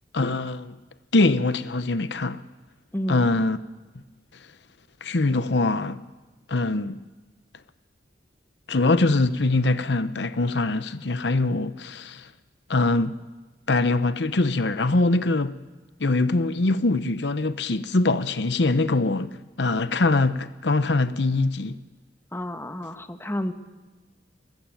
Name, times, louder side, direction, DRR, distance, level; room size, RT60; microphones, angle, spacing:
voice 1, 0.1-0.8 1.1-2.4 3.1-3.6 5.0-6.0 6.5-7.0 8.7-12.3 12.7-13.2 13.7-15.5 16.0-19.3 19.6-21.8, left 2 dB, 75° left, 0.9 m, -23 dB
voice 2, 2.9-3.3 22.3-23.5, equal, 15° left, 1.4 m, -30 dB
29.5 x 21.5 x 9.1 m
head